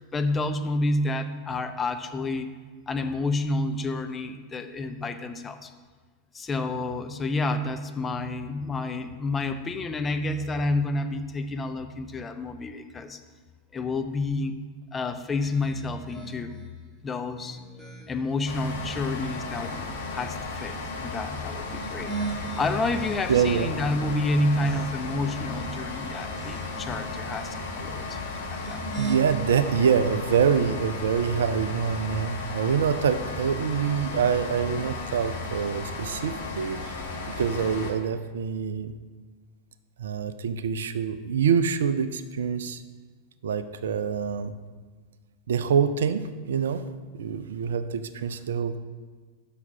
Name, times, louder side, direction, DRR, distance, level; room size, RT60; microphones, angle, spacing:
voice 1, 0.0-2.5 2.9-5.7 6.3-13.2 13.7-14.6 14.9-16.6 17.0-17.6 18.1-22.1 22.6-28.8, left 2 dB, 15° left, 6 dB, 0.6 m, -29 dB
sound 1, 15.4-16.7 17.3-18.4 18.9-20.0 21.5-23.6 24.1-25.3 25.8-26.9 28.4-29.1, right 4 dB, ahead, 1.5 m, -39 dB
sound 2, 18.5-37.9, left 3 dB, 60° left, 1.3 m, -35 dB
voice 2, 23.3-23.7 29.0-37.0 37.3-38.9 40.0-42.8 43.4-44.5 45.5-46.8 47.1-48.8, right 7 dB, 65° right, 12 dB, 0.4 m, -25 dB
6.0 x 5.8 x 6.4 m, 1.5 s
figure-of-eight pair, 90°, 0 cm